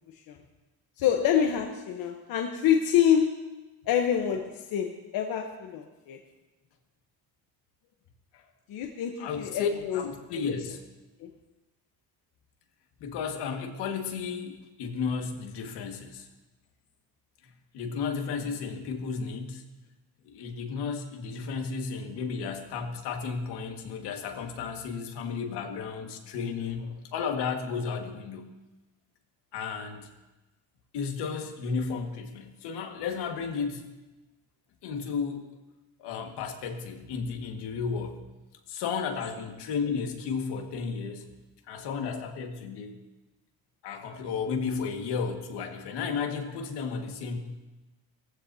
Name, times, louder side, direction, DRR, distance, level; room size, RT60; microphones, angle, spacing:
voice 1, 1.0-3.4 3.9-6.2 8.7-10.0 10.3-10.4 11.2-11.3, left 9 dB, 60° left, 3 dB, 1.1 m, -26 dB
voice 2, 9.2-9.7 9.9-10.8 13.0-16.3 17.4-19.6 20.2-28.5 29.5-30.1 30.9-33.9 34.8-35.4 36.0-38.2 38.7-41.3 41.7-43.0 43.8-47.4, left 5 dB, 80° left, 3 dB, 1.8 m, -33 dB
19.0 x 15.0 x 2.8 m, 1.1 s
cardioid pair, 165°, 40 cm